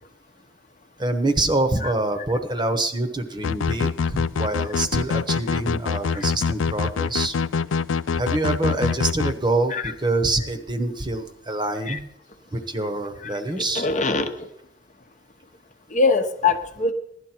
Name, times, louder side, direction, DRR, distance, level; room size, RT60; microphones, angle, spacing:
voice 1, 1.0-7.3 8.2-12.0 12.5-13.9, right 2 dB, 25° right, 6 dB, 1.0 m, -25 dB
sound 1, 3.4-9.3, left 5 dB, 90° left, 0.4 m, -24 dB
voice 2, 13.7-14.5 15.9-16.9, left 4 dB, 40° left, 6 dB, 0.9 m, -23 dB
16.5 x 11.5 x 4.5 m, 0.75 s
head